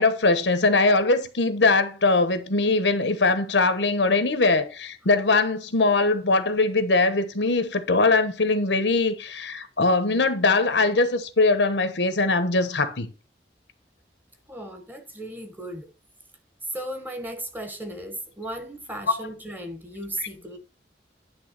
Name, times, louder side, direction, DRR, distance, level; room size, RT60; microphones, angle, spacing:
voice 1, 0.0-13.1, left 3 dB, 85° left, 1.1 m, -21 dB
voice 2, 14.5-15.9 16.7-20.6, right 1 dB, 10° right, 1.2 m, -35 dB
10.0 x 3.4 x 6.6 m
head